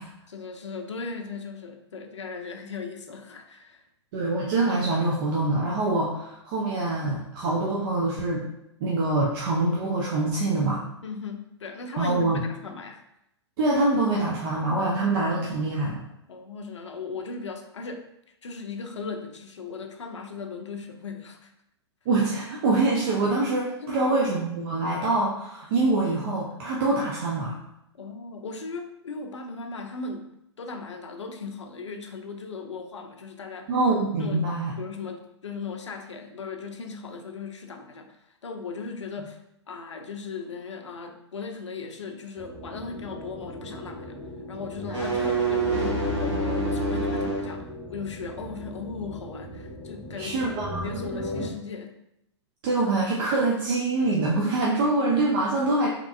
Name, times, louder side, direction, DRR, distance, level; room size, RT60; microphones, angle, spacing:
voice 1, 0.3-3.8 11.0-13.0 16.3-18.1 18.4-21.5 23.8-24.4 27.9-30.3 30.6-33.7 34.2-34.5 34.8-38.1 38.4-39.4 39.7-44.2 44.5-51.9, left 4 dB, 80° left, 5 dB, 0.5 m, -37 dB
voice 2, 4.1-8.4 8.8-10.8 12.0-12.4 13.6-16.0 22.1-27.6 33.7-34.7 50.2-50.9 52.6-55.9, right 2 dB, 50° right, -3 dB, 0.7 m, -25 dB
sound 1, 42.4-51.5, equal, 5° right, 0.8 m, -39 dB
sound 2, 44.7-47.5, right 2 dB, 75° right, 1.4 m, -26 dB
3.6 x 3.0 x 2.4 m, 0.81 s
figure-of-eight pair, 105°, 15 cm